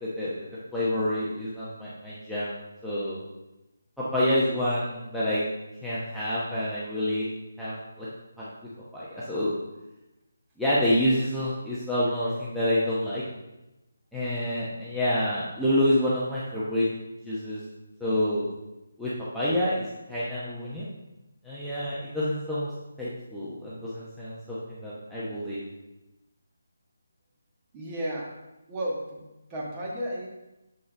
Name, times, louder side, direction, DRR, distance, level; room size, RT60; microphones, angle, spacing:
voice 1, 0.7-2.6 2.8-3.2 4.1-5.4 5.8-7.3 7.6-8.1 8.4-8.5 8.9-9.5 10.6-13.2 14.1-16.9 17.3-17.6 18.0-18.5 19.0-20.9 21.4-22.7 23.0-25.6, left 1 dB, ahead, -12 dB, 1.0 m, -28 dB
voice 2, 27.7-28.3 28.7-29.2 29.5-30.3, equal, 20° right, -4 dB, 1.5 m, -33 dB
6.5 x 5.4 x 3.3 m, 0.98 s
figure-of-eight pair, 155°, 0 cm